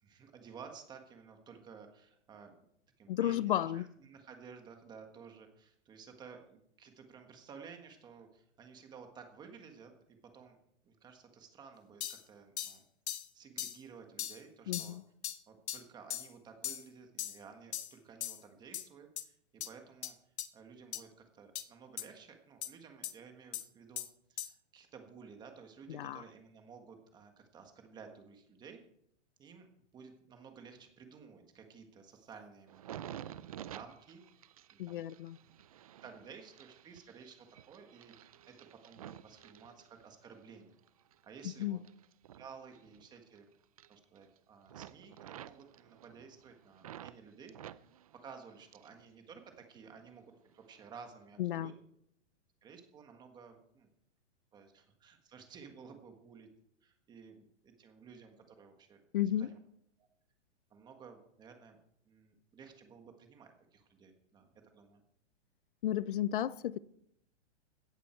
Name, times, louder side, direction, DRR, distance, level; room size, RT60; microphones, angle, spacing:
voice 1, 0.0-2.6 3.0-10.6 10.8-12.8 13.3-15.0 15.5-24.0 24.3-28.8 29.4-29.7 29.9-33.0 33.3-34.2 34.7-35.0 36.0-40.7 41.2-41.8 42.4-43.5 43.9-47.5 48.1-51.7 52.6-53.9 54.5-56.5 56.8-59.0 59.3-59.6 60.0-60.1 60.7-61.8 62.1-64.5 64.7-65.0, right 6 dB, 10° right, 1.5 m, -54 dB
voice 2, 3.1-3.9 14.7-15.0 25.9-26.2 34.8-35.4 41.6-41.8 51.4-51.7 59.1-59.5 65.8-66.8, left 12 dB, 45° left, 0.7 m, -33 dB
sound 1, 12.0-12.2 12.6-12.8 13.1-13.3 13.6-13.8 14.2-14.4 14.7-14.9 15.2-15.4 15.7-15.8 16.1-16.3 16.6-16.8 17.2-17.4 17.7-17.9 18.2-18.4 18.7-18.9 19.2-19.3 19.6-19.7 20.0-20.1 20.4-20.5 20.9-21.0 21.6-21.7 22.0-22.1 22.6-22.7 23.0-23.1 23.5-23.7 24.0-24.1 24.4-24.5, left 11 dB, 65° left, 1.5 m, -39 dB
sound 2, 32.7-40.3 40.8-43.4 43.6-44.4 44.7-47.2 47.5-49.0 49.3-50.1 50.6-50.8, right 10 dB, 30° right, 0.5 m, -51 dB
16.5 x 13.5 x 4.5 m
hypercardioid pair, 170°, 36 cm